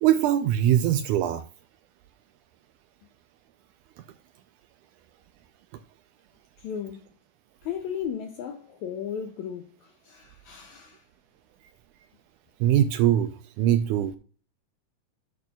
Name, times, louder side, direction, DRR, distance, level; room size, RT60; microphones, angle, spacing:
voice 1, 0.0-1.4 12.6-13.3 13.6-14.1, right 11 dB, 80° right, 1.8 m, -21 dB
voice 2, 6.6-7.0 7.6-11.0, left 8 dB, 80° left, 1.6 m, -35 dB
11.0 x 6.1 x 2.3 m
omnidirectional pair, 3.9 m